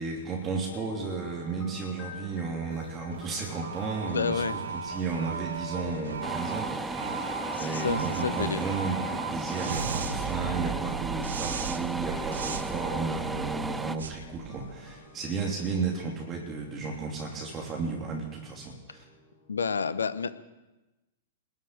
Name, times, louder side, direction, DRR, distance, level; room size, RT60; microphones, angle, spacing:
voice 1, 0.0-19.1, right 4 dB, 25° right, -1 dB, 3.1 m, -34 dB
sound 1, 0.7-19.6, left 3 dB, 35° left, 2.5 m, -46 dB
sound 2, 2.7-15.1, right 6 dB, 65° right, 1.2 m, -37 dB
voice 2, 4.1-4.6 7.5-8.6 19.5-20.3, left 5 dB, 70° left, 15 dB, 0.8 m, -29 dB
sound 3, 6.2-14.0, right 3 dB, 10° right, 0.5 m, -35 dB
20.0 x 7.4 x 8.9 m, 1.1 s
figure-of-eight pair, 100°, 0 cm